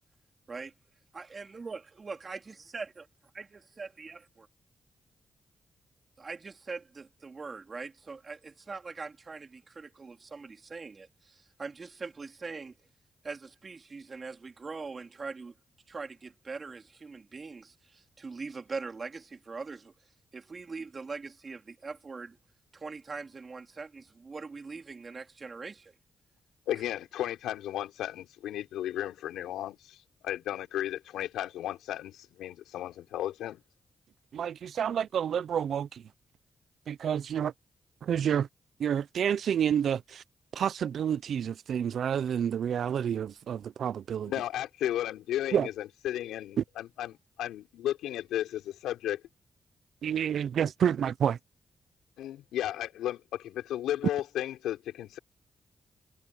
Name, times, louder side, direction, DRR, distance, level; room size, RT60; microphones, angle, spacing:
voice 1, 1.1-3.1 3.3-4.5 6.2-12.7 13.2-15.5 15.9-19.9 20.3-22.4 22.7-26.0, right 4 dB, 45° right, 2.8 m, -42 dB
voice 2, 26.7-30.0 30.2-33.6 44.3-49.2 52.2-55.2, left 12 dB, 90° left, 4.0 m, -34 dB
voice 3, 34.3-36.0 36.9-37.5 38.0-38.5 38.8-40.2 40.5-44.3 45.5-45.7 50.0-51.4, right 8 dB, 75° right, 0.7 m, -29 dB
supercardioid pair, 50°, 0 cm